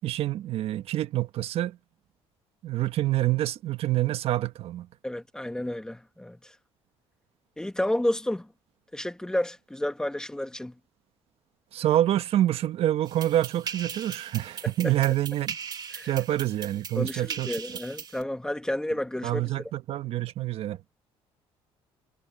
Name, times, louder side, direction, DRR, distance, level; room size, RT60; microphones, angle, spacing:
voice 1, 0.0-1.8 2.6-4.9 11.7-15.6 16.0-17.6 19.2-20.8, right 13 dB, 65° right, 1.4 m, -27 dB
voice 2, 5.0-6.5 7.6-8.5 8.9-10.7 14.8-14.9 15.9-16.1 16.9-19.5, left 1 dB, 5° left, 1.6 m, -31 dB
sound 1, 13.1-18.2, right 7 dB, 35° right, 1.8 m, -39 dB
cardioid pair, 120°, 11 cm